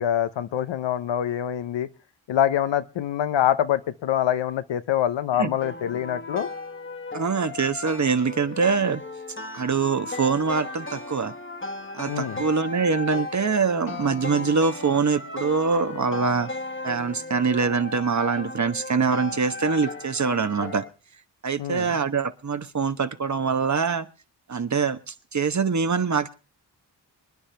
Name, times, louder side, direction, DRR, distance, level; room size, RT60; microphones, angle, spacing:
voice 1, 0.0-1.9 2.3-6.5 12.1-12.4 21.6-22.0, left 10 dB, 85° left, 12 dB, 0.8 m, -25 dB
sound 1, 5.6-20.9, left 2 dB, 30° left, 1.4 m, -36 dB
voice 2, 7.1-9.0 9.5-11.3 11.9-16.5 16.8-20.8 21.4-24.1 24.5-26.3, right 5 dB, 40° right, 11 dB, 1.1 m, -24 dB
26.0 x 10.0 x 3.4 m, 0.35 s
cardioid pair, 50°, 43 cm